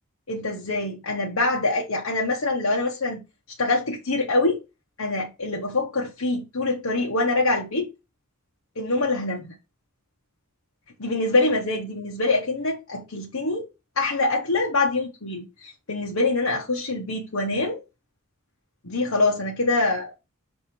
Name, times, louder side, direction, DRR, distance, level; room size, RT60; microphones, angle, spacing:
voice 1, 0.3-3.2 3.6-4.6 5.0-7.9 8.7-9.5 11.0-13.7 14.0-17.8 18.8-20.1, left 2 dB, 85° left, 1.3 m, -24 dB
6.5 x 3.4 x 4.4 m
head